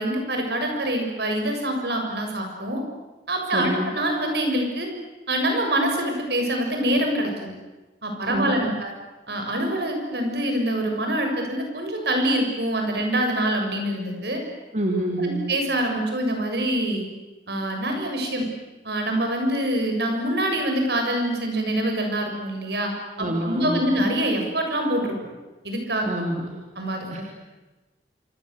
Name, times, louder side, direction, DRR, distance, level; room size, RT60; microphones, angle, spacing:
voice 1, 0.0-2.8 3.3-4.9 5.3-7.5 8.0-8.9 9.3-14.4 15.2-17.0 17.5-18.5 18.8-22.9 23.2-25.2 25.6-26.1 26.8-27.2, right 1 dB, 70° right, 3 dB, 7.2 m, -25 dB
voice 2, 3.5-4.0 8.3-8.8 14.7-15.5 23.2-23.9 26.0-26.6 27.1-27.2, right 1 dB, 40° right, 1 dB, 3.2 m, -27 dB
27.5 x 26.5 x 8.1 m, 1.2 s
head